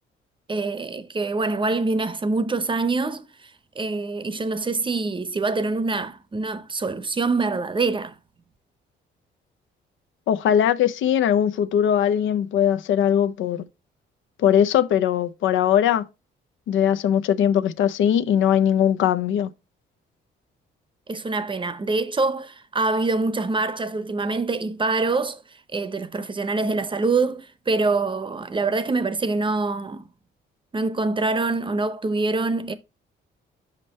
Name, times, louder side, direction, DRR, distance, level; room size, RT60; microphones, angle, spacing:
voice 1, 0.5-3.2 3.8-8.1 21.1-25.4 25.7-30.0 30.7-32.7, right 3 dB, 25° right, 0.7 m, -25 dB
voice 2, 10.3-13.6 14.4-16.0 16.7-19.5, left 9 dB, 75° left, 0.6 m, -20 dB
5.4 x 5.2 x 4.2 m
cardioid pair, 90°, 20 cm